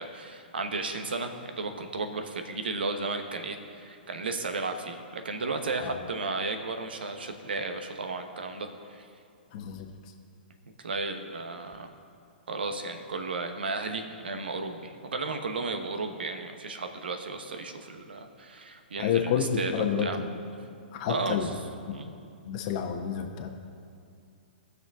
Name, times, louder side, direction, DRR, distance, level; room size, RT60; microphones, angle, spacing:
voice 1, 0.0-9.1 10.8-11.9 12.5-20.2 21.1-21.5 21.9-22.1, right 3 dB, 75° right, 6 dB, 1.1 m, -34 dB
voice 2, 9.5-10.1 19.0-20.3 20.9-21.5 21.9-22.0 22.4-23.5, left 7 dB, 45° left, 2 dB, 1.0 m, -29 dB
19.5 x 6.6 x 3.6 m, 2.4 s
hypercardioid pair, 120°, 5 cm